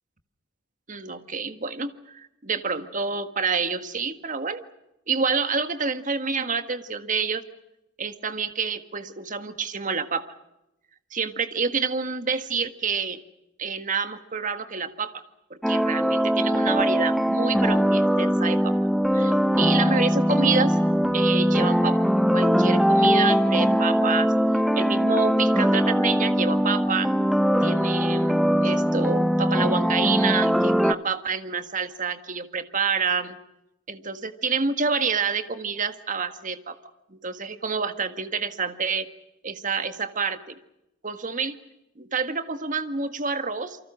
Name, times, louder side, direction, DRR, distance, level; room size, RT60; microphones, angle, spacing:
voice 1, 0.9-4.6 5.1-7.4 8.0-10.2 11.1-13.2 13.6-15.2 15.5-18.7 19.1-20.8 21.1-22.0 22.3-24.3 24.7-27.1 27.6-33.4 33.9-36.7 37.1-39.1 39.4-40.6 41.0-41.6 42.0-43.8, right 5 dB, 40° right, 10 dB, 1.7 m, -28 dB
sound 1, 15.6-30.9, equal, ahead, 0.8 m, -21 dB
28.5 x 24.5 x 6.3 m, 0.89 s
head